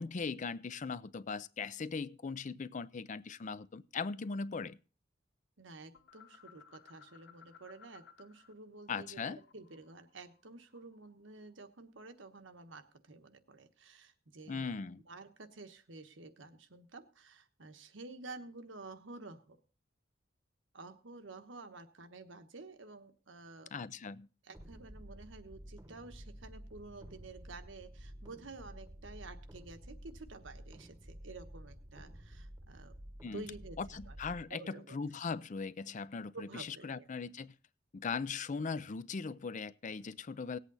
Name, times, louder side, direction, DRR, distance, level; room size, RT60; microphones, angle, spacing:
voice 1, 0.0-4.8 8.9-9.4 14.5-15.0 23.7-24.3 33.2-33.5 33.8-37.5 37.9-40.6, left 5 dB, 40° left, 0.5 m, -39 dB
voice 2, 5.6-14.7 15.1-19.6 20.7-23.7 24.4-33.0 33.3-34.2 34.5-35.0 36.3-37.1, right 3 dB, 85° right, 1.2 m, -51 dB
sound 1, 5.9-8.5 8.8-11.1, left 7 dB, 65° left, 0.9 m, -60 dB
sound 2, 24.5-34.4, equal, 15° right, 1.0 m, -51 dB
18.0 x 8.2 x 4.1 m
head